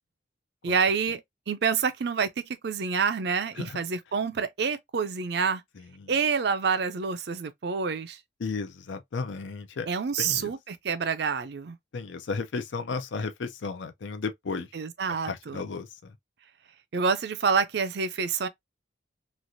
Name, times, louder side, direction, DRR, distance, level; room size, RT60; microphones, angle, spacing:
voice 1, 0.6-5.6 6.1-8.2 9.9-11.8 14.7-15.6 16.9-18.5, right 5 dB, 60° right, 0.4 m, -27 dB
voice 2, 5.8-6.1 8.4-9.9 10.2-10.5 11.9-14.7 15.2-16.2, left 4 dB, 75° left, 0.5 m, -34 dB
3.1 x 2.4 x 2.6 m
head